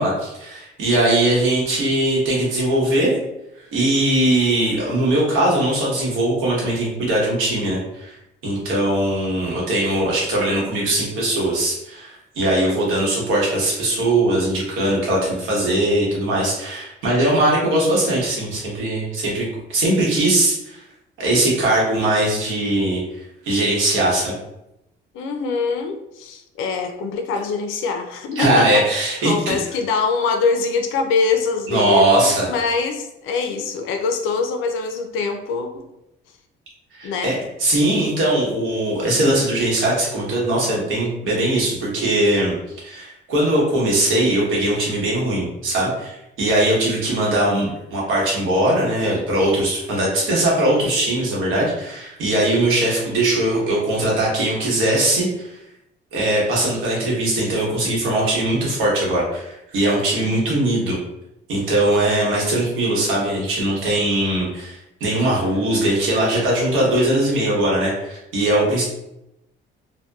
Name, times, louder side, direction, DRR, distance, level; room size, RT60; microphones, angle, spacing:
voice 1, 0.0-3.1 3.7-8.2 8.4-20.8 21.2-24.3 28.4-29.6 31.7-32.5 36.9-42.5 42.8-55.5 56.1-61.0 61.5-68.8, right 1 dB, 85° right, -4 dB, 1.1 m, -20 dB
voice 2, 25.1-28.9 29.2-35.8 37.0-37.4 60.2-60.6, left 4 dB, 90° left, 5 dB, 0.4 m, -24 dB
2.7 x 2.1 x 2.3 m, 0.86 s
cardioid pair, 110°, 20 cm